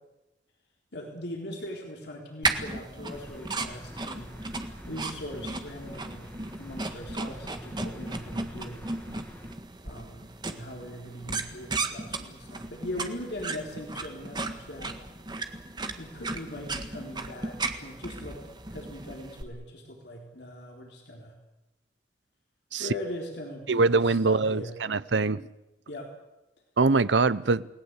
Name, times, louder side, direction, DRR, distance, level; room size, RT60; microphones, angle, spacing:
voice 1, 0.9-4.3 4.9-8.9 9.8-15.0 16.0-18.4 18.7-21.3 22.8-24.8 25.9-26.1, left 1 dB, 65° left, 0 dB, 3.9 m, -40 dB
sound 1, 2.4-19.4, right 3 dB, 25° right, 1.7 m, -35 dB
sound 2, 3.1-9.5, equal, 10° left, 2.2 m, -46 dB
voice 2, 23.7-25.5 26.8-27.7, right 3 dB, 80° right, 17 dB, 0.8 m, -23 dB
29.0 x 19.0 x 8.3 m, 0.96 s
head